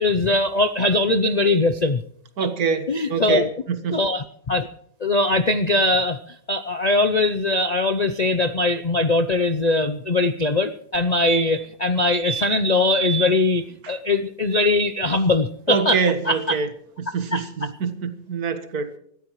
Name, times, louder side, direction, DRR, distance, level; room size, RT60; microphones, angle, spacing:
voice 1, 0.0-2.0 2.4-2.5 2.9-3.5 3.9-4.7 5.0-6.2 6.5-16.0 16.3-16.6 17.3-17.4, left 2 dB, 90° left, 10 dB, 0.3 m, -21 dB
voice 2, 2.4-4.0 13.8-14.0 15.7-16.7 17.0-19.0, right 5 dB, 65° right, 10 dB, 1.9 m, -25 dB
sound 1, 10.9-11.0 11.3-11.7 12.1-12.5 12.9-13.3 15.7-15.8 16.0-16.1, right 6 dB, 85° right, 2.0 m, -29 dB
25.0 x 13.5 x 3.1 m, 0.67 s
omnidirectional pair, 1.8 m